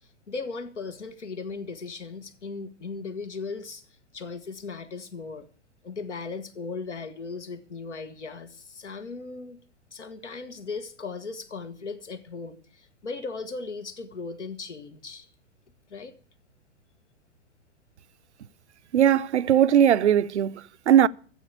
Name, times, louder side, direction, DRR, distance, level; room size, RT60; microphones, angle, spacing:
voice 1, 0.3-3.8 4.1-5.5 5.8-9.6 9.9-15.3 15.9-16.1, left 4 dB, 65° left, 1.7 m, -37 dB
voice 2, 18.9-21.1, right 10 dB, 65° right, 0.6 m, -19 dB
13.5 x 7.7 x 8.3 m
figure-of-eight pair, 110°, 37 cm